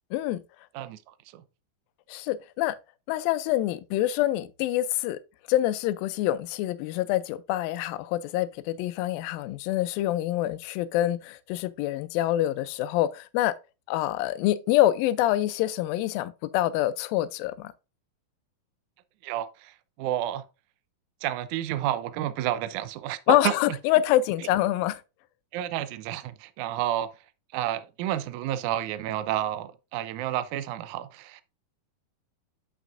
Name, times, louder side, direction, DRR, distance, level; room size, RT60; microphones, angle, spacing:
voice 1, 2.1-2.8 3.1-5.2 5.5-13.5 13.9-17.7 23.3-25.0, left 14 dB, 85° left, 2.3 m, -26 dB
voice 2, 19.2-20.4 21.2-23.5 25.5-27.1 27.5-31.4, right 12 dB, 90° right, 1.7 m, -30 dB
8.2 x 6.0 x 2.5 m
omnidirectional pair, 4.1 m